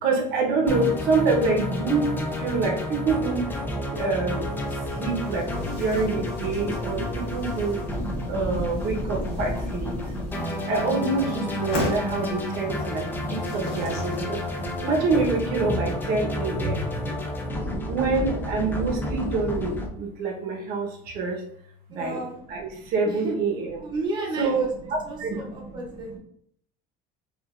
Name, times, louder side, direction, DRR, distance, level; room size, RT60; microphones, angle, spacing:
voice 1, 0.0-3.5 3.9-7.8 8.3-10.0 10.7-14.4 14.8-16.9 17.9-21.4 21.9-22.2 22.5-23.8 24.4-24.7 25.2-25.4 26.1-26.2, right 3 dB, 60° right, 0 dB, 1.0 m, -26 dB
sound 1, 0.7-19.9, left 1 dB, 10° left, 0.4 m, -30 dB
sound 2, 4.5-15.5, left 2 dB, 75° left, 1.4 m, -39 dB
voice 2, 21.9-22.4 23.0-23.4 23.8-24.7 25.0-26.1, right 2 dB, 25° right, -2 dB, 0.8 m, -33 dB
5.1 x 2.5 x 2.5 m, 0.67 s
cardioid pair, 155°, 18 cm